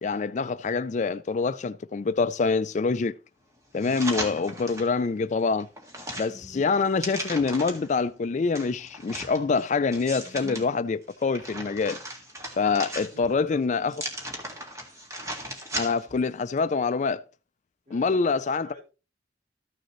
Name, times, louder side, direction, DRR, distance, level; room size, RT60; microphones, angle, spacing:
voice 1, 0.0-3.1 3.7-5.7 6.2-12.0 12.6-13.9 15.8-17.2 17.9-18.7, left 4 dB, 40° left, 0.4 m, -25 dB
sound 1, 3.8-4.9 5.4-7.9 8.5-10.6 11.1-13.4 13.9-16.2 16.6-16.7, right 1 dB, 15° right, 1.9 m, -37 dB
voice 2, 13.1-13.6 17.9-18.9, left 1 dB, 40° right, 5.2 m, -47 dB
14.0 x 6.6 x 3.1 m
head